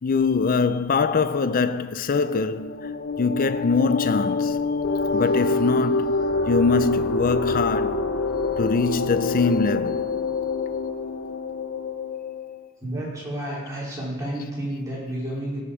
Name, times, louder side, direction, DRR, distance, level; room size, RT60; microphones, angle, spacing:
voice 1, 0.0-2.9 3.2-4.6 5.1-6.2 6.5-8.1 8.6-10.2, left 4 dB, 45° left, 0.4 m, -23 dB
sound 1, 2.4-12.6, left 3 dB, 60° left, 0.9 m, -26 dB
voice 2, 12.8-15.6, right 1 dB, 15° right, 4.2 m, -31 dB
16.0 x 7.2 x 4.9 m
head